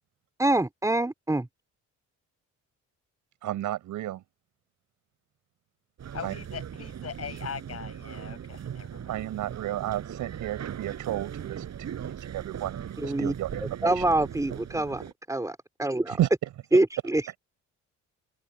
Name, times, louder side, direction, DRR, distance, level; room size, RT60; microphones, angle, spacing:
voice 1, 0.4-1.5 13.0-13.3 13.8-15.0 15.3-16.2 16.7-17.4, right 2 dB, 10° right, 4.1 m, -25 dB
voice 2, 3.4-4.2 6.2-6.3 9.1-14.0 16.1-16.3, right 13 dB, 85° right, 6.4 m, -32 dB
sound 1, 6.0-15.1, right 9 dB, 60° right, 6.8 m, -39 dB
voice 3, 6.1-9.1, left 8 dB, 55° left, 7.7 m, -40 dB
cardioid pair, 90°, 30 cm